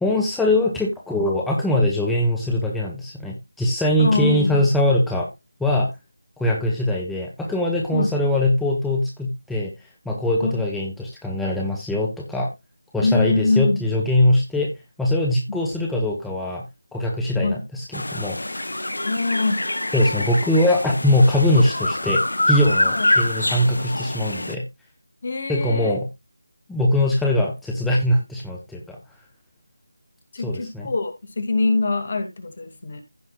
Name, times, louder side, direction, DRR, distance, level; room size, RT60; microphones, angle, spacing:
voice 1, 0.0-5.3 5.6-5.9 6.4-9.7 10.0-12.5 12.9-14.7 15.0-16.6 16.9-18.7 19.9-22.2 22.5-24.6 25.5-26.1 26.7-29.0 30.4-30.9, left 1 dB, ahead, -2 dB, 0.9 m, -22 dB
voice 2, 4.0-4.6 7.9-8.2 10.4-10.6 13.0-13.9 15.5-15.6 17.4-17.6 19.0-19.6 22.8-23.1 25.2-25.9 30.3-33.0, left 3 dB, 45° left, 8 dB, 2.3 m, -23 dB
sound 1, 17.9-24.5, left 1 dB, 75° left, 0.8 m, -25 dB
15.5 x 5.6 x 2.4 m, 0.22 s
figure-of-eight pair, 165°, 0 cm